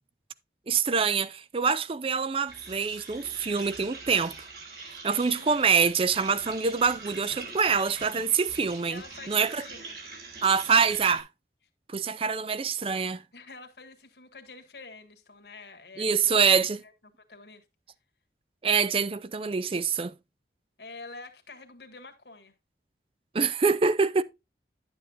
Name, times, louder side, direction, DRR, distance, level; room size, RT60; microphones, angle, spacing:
voice 1, 0.7-4.3 5.0-9.0 9.3-9.6 10.4-11.3 11.9-13.2 16.0-16.8 18.6-20.1 23.3-24.2, right 5 dB, 30° right, 0.4 m, -25 dB
sound 1, 2.5-11.2, right 3 dB, 65° right, 3.4 m, -44 dB
voice 2, 5.1-5.5 8.9-10.0 13.3-16.3 16.8-17.6 20.8-22.5, left 3 dB, 70° left, 1.6 m, -47 dB
11.0 x 7.9 x 2.5 m
head